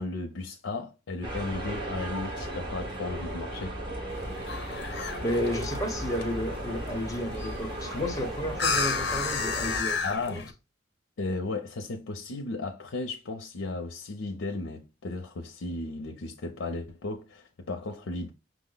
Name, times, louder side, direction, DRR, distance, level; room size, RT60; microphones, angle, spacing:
voice 1, 0.0-3.8 10.0-10.5 11.2-18.3, left 3 dB, 85° left, 0.6 m, -35 dB
sound 1, 1.2-9.8, right 1 dB, 25° right, 1.1 m, -36 dB
sound 2, 4.1-10.5, left 4 dB, 55° left, 0.8 m, -33 dB
voice 2, 5.2-10.0 10.3-10.4, left 1 dB, 15° left, 0.8 m, -32 dB
6.0 x 2.1 x 3.8 m
head